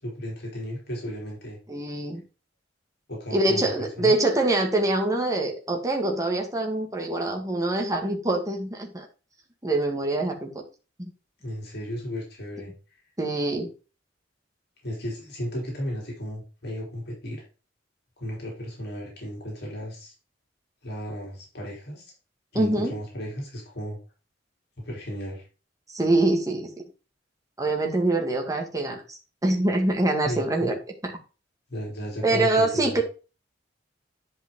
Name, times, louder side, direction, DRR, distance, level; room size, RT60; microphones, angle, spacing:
voice 1, 0.0-1.6 3.1-4.1 11.4-12.7 14.8-17.4 18.2-20.1 20.8-22.1 22.5-24.0 24.8-25.5 30.2-30.7 31.7-33.0, equal, 60° left, -2 dB, 3.5 m, -34 dB
voice 2, 1.7-2.2 3.3-9.1 9.6-10.6 11.0-11.1 13.2-13.7 22.6-22.9 25.9-26.7 27.6-30.8 31.0-31.1 32.2-33.0, right 2 dB, 20° right, 2 dB, 1.9 m, -24 dB
10.5 x 5.3 x 3.7 m, 0.33 s
head